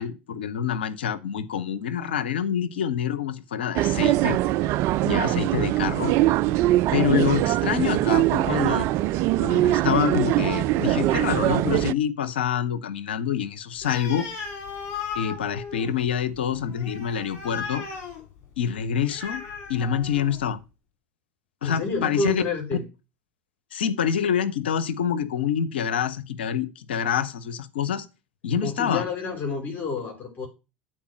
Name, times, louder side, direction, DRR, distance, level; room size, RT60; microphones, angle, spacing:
voice 1, 0.0-4.4 5.0-6.1 6.9-8.9 9.4-14.3 15.1-17.8 18.6-19.4 19.7-20.6 21.6-22.4 23.7-28.1 28.4-29.0, left 8 dB, 80° left, 0.7 m, -26 dB
sound 1, 3.8-11.9, right 15 dB, 55° right, 0.4 m, -22 dB
Animal, 13.8-20.5, left 5 dB, 50° left, 3.9 m, -37 dB
voice 2, 21.6-22.8 28.6-30.5, left 3 dB, 35° left, 4.0 m, -29 dB
8.7 x 4.5 x 6.0 m
hypercardioid pair, 75°, 6 cm